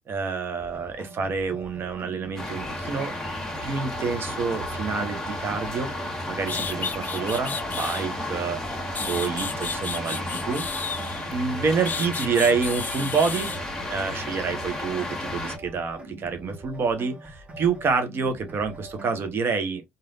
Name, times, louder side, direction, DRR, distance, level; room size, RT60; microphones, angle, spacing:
voice 1, 0.1-3.1 3.6-5.9 6.3-10.6 11.3-13.5 13.9-19.9, right 5 dB, 50° right, 0.9 m, -28 dB
sound 1, 0.6-19.3, right 1 dB, 25° right, 1.4 m, -43 dB
sound 2, 2.4-15.6, left 1 dB, 10° left, 1.5 m, -33 dB
sound 3, 6.5-8.1 8.7-11.3 11.8-13.6, left 5 dB, 40° left, 0.5 m, -33 dB
3.1 x 2.6 x 2.5 m
supercardioid pair, 65°, 5 cm